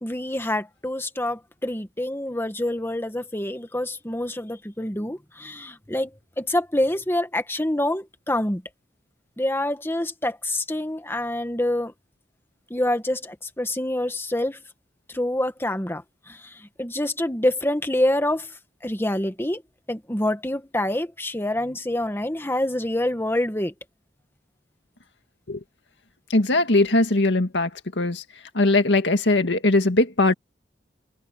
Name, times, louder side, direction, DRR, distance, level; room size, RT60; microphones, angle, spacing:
voice 1, 0.0-6.1 6.4-8.6 9.4-11.9 12.7-14.6 15.1-19.6 19.9-23.7, left 1 dB, 15° left, 1.7 m, -26 dB
voice 2, 26.3-27.7 28.0-28.2 28.5-30.3, left 2 dB, 85° left, 2.0 m, -20 dB
open air
head